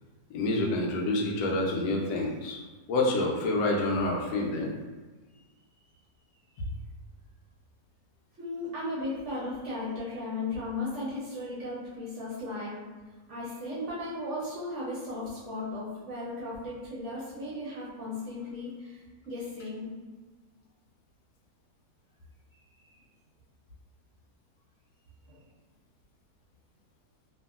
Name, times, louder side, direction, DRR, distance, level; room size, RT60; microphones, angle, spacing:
voice 1, 0.3-2.6 2.9-4.7 6.6-6.7, left 2 dB, 90° left, 0 dB, 1.2 m, -28 dB
voice 2, 8.4-12.8 13.3-19.9 25.3-25.4, left 2 dB, 55° right, -7 dB, 0.9 m, -36 dB
2.8 x 2.5 x 2.4 m, 1.2 s
omnidirectional pair, 1.8 m